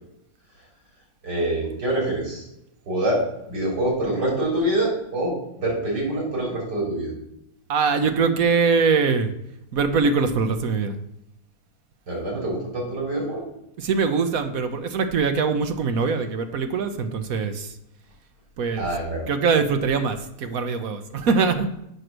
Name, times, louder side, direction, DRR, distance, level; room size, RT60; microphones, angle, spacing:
voice 1, 1.2-2.5 2.9-3.2 3.5-7.1 12.1-13.4 18.8-19.2, right 1 dB, 80° right, -2 dB, 4.3 m, -25 dB
voice 2, 7.7-9.3 9.7-11.0 13.8-17.8 18.6-18.9 19.3-21.7, right 5 dB, 65° right, 8 dB, 1.2 m, -22 dB
7.7 x 6.4 x 6.1 m, 0.82 s
omnidirectional pair, 1.8 m